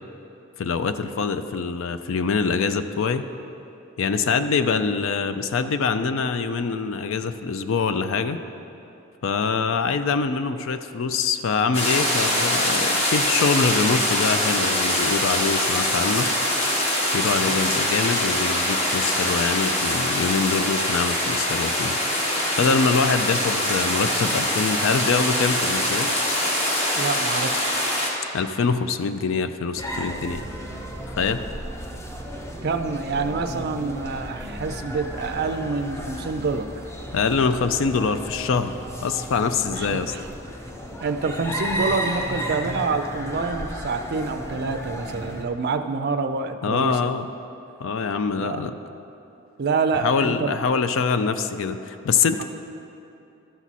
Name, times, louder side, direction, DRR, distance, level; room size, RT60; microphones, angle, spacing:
voice 1, 0.6-3.2 4.0-8.4 9.2-16.3 17.1-22.0 22.6-26.1 28.3-30.4 31.2-31.4 37.1-40.1 46.6-47.3 47.8-48.8 50.0-52.4, left 5 dB, 65° left, 10 dB, 0.4 m, -24 dB
sound 1, 11.7-28.1, left 1 dB, 30° left, 1.3 m, -23 dB
voice 2, 26.9-27.7 32.6-36.7 39.7-40.3 41.0-47.1 48.4-48.6 49.6-50.6, right 4 dB, 50° right, 7 dB, 0.4 m, -27 dB
sound 2, 29.8-45.4, equal, 15° left, 0.6 m, -34 dB
12.5 x 6.0 x 4.1 m, 2.8 s
head